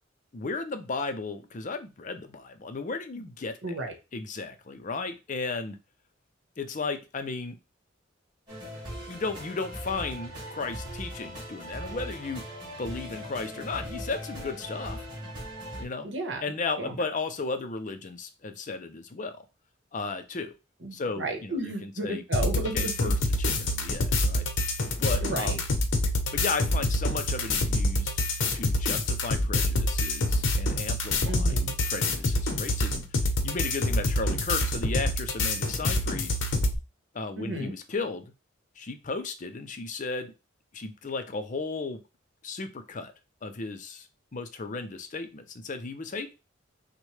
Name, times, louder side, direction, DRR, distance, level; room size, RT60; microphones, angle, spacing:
voice 1, 0.3-3.7 4.1-5.8 6.6-7.6 9.1-12.4 12.8-15.1 15.7-16.1 16.4-19.4 19.9-20.5 20.9-22.2 22.5-24.5 25.0-25.6 26.3-28.1 28.5-31.6 31.9-36.4 37.1-38.3 38.8-40.3 40.7-42.0 42.4-43.1 43.4-46.3, left 3 dB, 40° left, 9 dB, 0.5 m, -35 dB
voice 2, 3.6-3.9 16.0-16.4 16.8-17.0 20.8-22.9 25.2-25.6 31.3-31.7 37.4-37.7, right 2 dB, 60° right, 3 dB, 1.2 m, -33 dB
sound 1, 8.5-15.8, equal, 25° right, 2.7 m, -39 dB
sound 2, 22.3-36.7, left 2 dB, 75° left, 0.8 m, -27 dB
6.2 x 2.2 x 3.2 m, 0.28 s
head